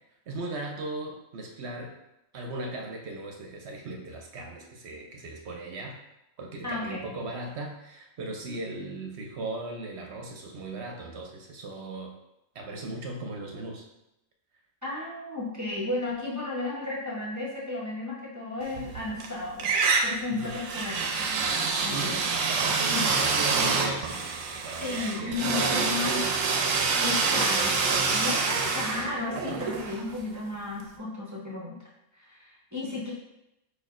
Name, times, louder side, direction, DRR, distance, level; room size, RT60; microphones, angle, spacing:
voice 1, 0.3-2.0 2.3-6.0 6.4-12.1 12.5-13.9 20.3-20.5 21.9-26.4, right 2 dB, 60° right, 1 dB, 0.9 m, -38 dB
voice 2, 6.6-7.1 14.8-19.7 20.0-21.3 21.8-22.3 22.9-23.1 23.5-23.8 24.8-26.2 27.0-31.8 32.1-33.1, left 3 dB, 15° right, -6 dB, 0.7 m, -34 dB
sound 1, 18.7-19.3 19.6-30.5, right 4 dB, 85° right, 1.0 m, -27 dB
5.0 x 4.3 x 2.5 m, 0.89 s
omnidirectional pair, 1.4 m